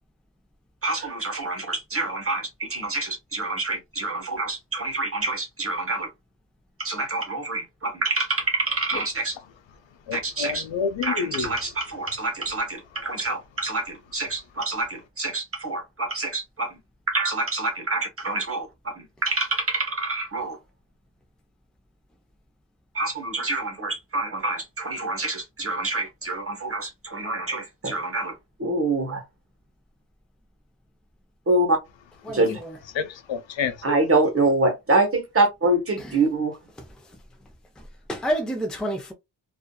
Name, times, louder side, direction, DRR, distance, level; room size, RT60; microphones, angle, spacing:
voice 1, 0.8-6.1 6.8-9.4 10.1-10.7 11.0-16.8 17.1-20.6 22.9-29.2 31.5-31.8 32.3-32.6 33.8-36.6, right 2 dB, 30° right, 1.0 m, -26 dB
voice 2, 10.1-11.5 33.0-34.0, left 6 dB, 80° left, 0.6 m, -28 dB
voice 3, 32.2-32.7 36.0-36.1 37.8-39.1, right 1 dB, ahead, 0.5 m, -29 dB
2.5 x 2.5 x 2.2 m
wide cardioid pair, 120°, 44 cm